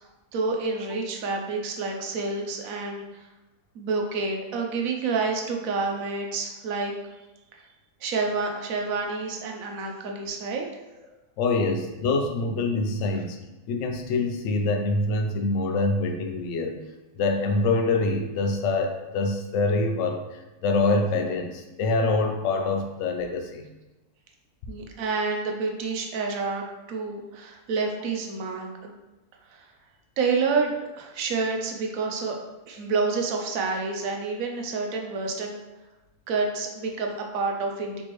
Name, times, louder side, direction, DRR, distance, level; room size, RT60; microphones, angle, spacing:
voice 1, 0.3-3.2 3.7-6.9 7.5-7.6 8.0-10.7 24.7-28.9 29.5-29.7 30.2-32.4 32.7-35.6 36.3-38.0, right 4 dB, 65° right, 2 dB, 1.0 m, -28 dB
voice 2, 11.4-13.4 13.7-16.8 17.2-23.7, left 3 dB, 65° left, 4 dB, 0.8 m, -25 dB
4.5 x 3.4 x 3.0 m, 1.1 s
omnidirectional pair, 1.7 m